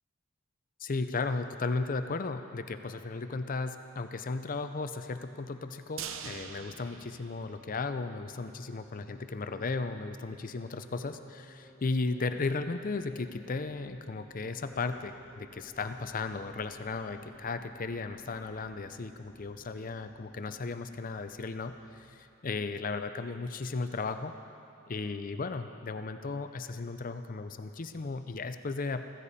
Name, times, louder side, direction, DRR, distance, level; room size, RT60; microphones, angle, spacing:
voice 1, 0.8-24.3 24.9-29.0, left 3 dB, 45° left, 9 dB, 0.6 m, -35 dB
sound 1, 6.0-8.1 8.4-8.5 8.9-9.0, right 7 dB, 80° right, 0.7 m, -43 dB
sound 2, 7.5-22.0, right 1 dB, 30° right, 2.2 m, -56 dB
15.0 x 15.0 x 4.2 m, 2.7 s
head